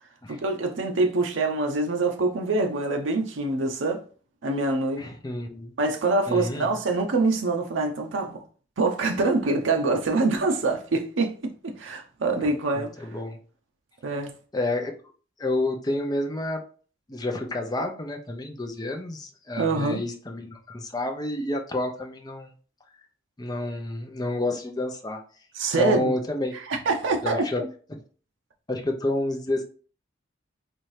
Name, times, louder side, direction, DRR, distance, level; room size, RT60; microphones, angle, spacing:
voice 1, 0.3-4.0 4.4-5.1 5.8-8.4 8.8-12.9 14.0-14.3 19.6-20.0 25.5-26.1 26.5-27.7, right 3 dB, 80° right, 0.6 m, -25 dB
voice 2, 5.0-5.7 6.3-6.7 12.4-13.4 14.5-14.9 15.4-16.6 17.1-22.5 23.4-25.2 25.7-26.5 27.2-27.6 27.9-28.0 28.7-29.6, left 2 dB, 20° left, 0.5 m, -29 dB
4.3 x 2.6 x 3.1 m
head